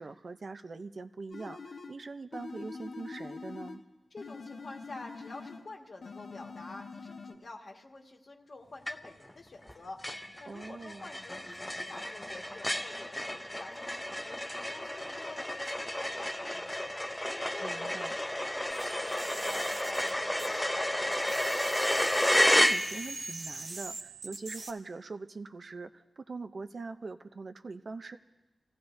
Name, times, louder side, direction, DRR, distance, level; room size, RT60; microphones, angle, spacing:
voice 1, 0.0-3.8 10.4-11.0 17.6-18.2 22.5-28.2, right 3 dB, 50° right, 8 dB, 0.5 m, -42 dB
sound 1, 1.3-2.0 2.3-3.8 4.2-5.7 6.0-7.3, left 4 dB, 65° left, 1.0 m, -44 dB
voice 2, 4.1-10.0 10.4-14.4 14.7-16.9 17.4-21.6, left 3 dB, 50° left, 1 dB, 1.6 m, -48 dB
sound 2, 8.9-9.3 9.7-9.8 10.0-23.3, left 1 dB, 10° left, 0.5 m, -31 dB
sound 3, 18.7-20.9 21.1-24.7, right 3 dB, 70° right, 1.2 m, -43 dB
29.0 x 16.5 x 2.6 m, 1.1 s
wide cardioid pair, 140°, 0 cm